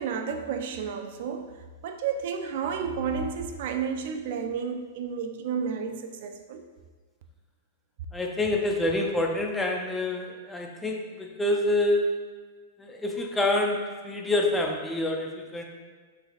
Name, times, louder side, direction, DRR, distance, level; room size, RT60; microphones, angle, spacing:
voice 1, 0.0-1.6 1.8-6.6, right 6 dB, 55° right, 6 dB, 0.4 m, -31 dB
voice 2, 8.1-12.2 12.8-15.6, left 1 dB, 5° left, 1 dB, 0.4 m, -27 dB
6.1 x 3.3 x 2.4 m, 1.5 s
supercardioid pair, 160°, 0 cm